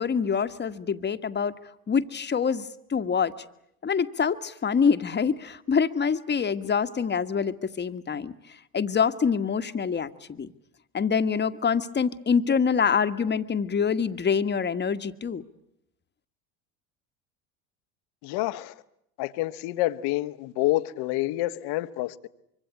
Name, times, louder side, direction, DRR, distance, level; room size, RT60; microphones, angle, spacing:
voice 1, 0.0-1.5 1.9-3.3 3.8-8.3 8.7-10.5 10.9-15.4, left 6 dB, 25° left, 1.6 m, -25 dB
voice 2, 18.2-18.7 19.2-22.3, left 17 dB, 60° left, 1.5 m, -28 dB
25.0 x 24.5 x 8.3 m
hypercardioid pair, 75°, 44 cm